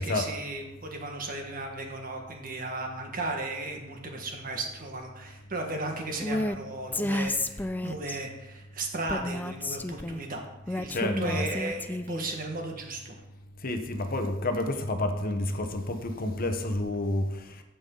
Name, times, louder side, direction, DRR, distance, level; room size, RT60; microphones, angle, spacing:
voice 1, 0.0-13.2, right 2 dB, 45° right, 2 dB, 1.5 m, -35 dB
Female speech woman speaking, 6.2-6.6 6.9-8.2 9.1-10.2 10.7-12.3, left 1 dB, 10° left, 0.3 m, -31 dB
voice 2, 10.9-11.4 13.6-17.3, left 2 dB, 45° left, 6 dB, 0.9 m, -29 dB
15.0 x 5.5 x 3.8 m, 0.97 s
head